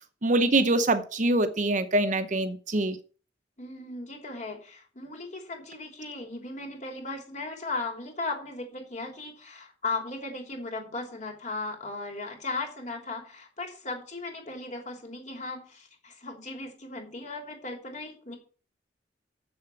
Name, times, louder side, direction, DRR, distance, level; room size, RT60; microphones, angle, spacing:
voice 1, 0.2-3.0, right 2 dB, 45° right, 0.8 m, -24 dB
voice 2, 3.6-18.4, left 3 dB, 40° left, 3.1 m, -37 dB
7.9 x 6.9 x 7.0 m
head